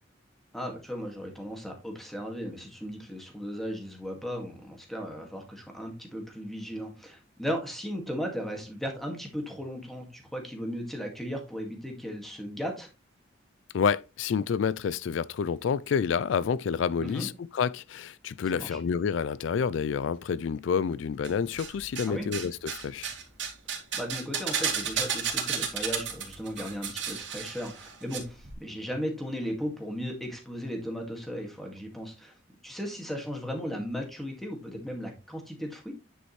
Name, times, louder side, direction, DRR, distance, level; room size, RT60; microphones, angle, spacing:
voice 1, 0.5-12.9 17.0-17.3 18.5-18.8 22.0-22.3 23.7-32.3 32.6-35.9, equal, ahead, 2.0 m, -36 dB
voice 2, 13.7-23.1, left 6 dB, 80° left, 0.4 m, -29 dB
sound 1, 21.2-22.1 22.3-28.2 28.4-28.5, right 7 dB, 75° right, 2.8 m, -32 dB
9.7 x 5.2 x 3.2 m
head